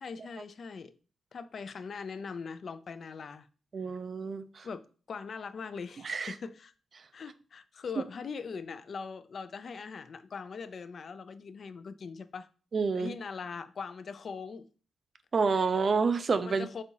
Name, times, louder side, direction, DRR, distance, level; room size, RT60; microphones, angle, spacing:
voice 1, 0.0-0.9 1.3-3.5 4.6-6.7 7.1-12.5 12.9-14.7 16.5-16.8, left 5 dB, 60° left, 0.3 m, -41 dB
voice 2, 3.7-4.7 6.0-6.3 12.7-13.1 15.3-16.8, right 4 dB, 50° right, 0.4 m, -29 dB
4.2 x 3.5 x 2.8 m
cardioid pair, 65°, 0 cm